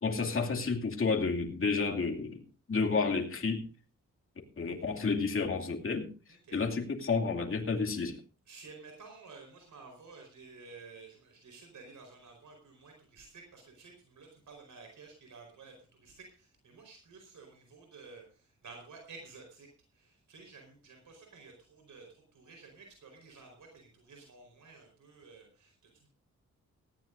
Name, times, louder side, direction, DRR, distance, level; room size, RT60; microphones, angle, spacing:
voice 1, 0.0-2.4 2.7-3.6 4.6-6.1 6.5-8.2, left 4 dB, 45° left, 1 dB, 2.6 m, -30 dB
voice 2, 6.3-6.6 7.9-8.0 8.5-26.1, right 4 dB, 75° right, 3 dB, 4.7 m, -53 dB
18.5 x 15.0 x 2.6 m, 0.36 s
cardioid pair, 100°, 31 cm